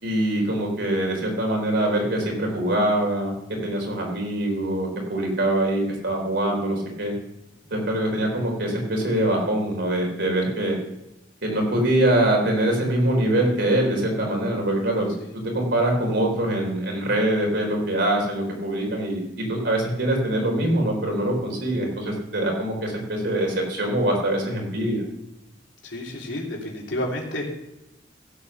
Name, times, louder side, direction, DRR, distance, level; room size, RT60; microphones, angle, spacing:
voice 1, 0.0-7.1 7.7-10.8 11.4-25.0, right 1 dB, 70° right, 0 dB, 4.0 m, -24 dB
voice 2, 25.8-27.5, left 1 dB, 75° left, -2 dB, 3.3 m, -30 dB
16.0 x 7.8 x 5.8 m, 0.89 s
head